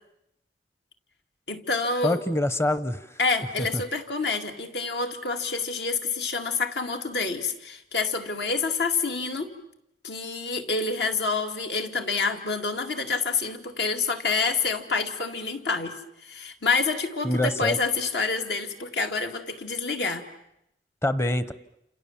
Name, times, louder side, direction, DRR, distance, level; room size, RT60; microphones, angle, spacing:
voice 1, 1.5-2.2 3.2-9.5 10.0-20.3, left 4 dB, 60° left, 5 dB, 2.3 m, -27 dB
voice 2, 2.0-3.1 3.7-3.8 17.2-17.8 21.0-21.5, left 1 dB, 15° left, 14 dB, 1.0 m, -25 dB
29.0 x 28.0 x 7.3 m, 0.82 s
head